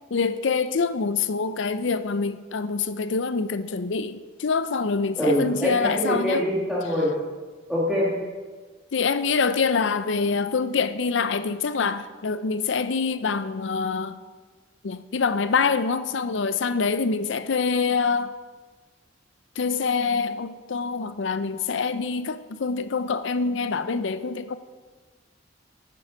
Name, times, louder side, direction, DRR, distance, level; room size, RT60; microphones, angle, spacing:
voice 1, 0.1-6.4 8.9-14.2 14.8-18.3 19.6-24.6, left 5 dB, 70° left, 0.5 m, -25 dB
voice 2, 5.2-7.1 7.7-8.1, equal, ahead, 1.7 m, -24 dB
10.5 x 8.5 x 5.0 m
head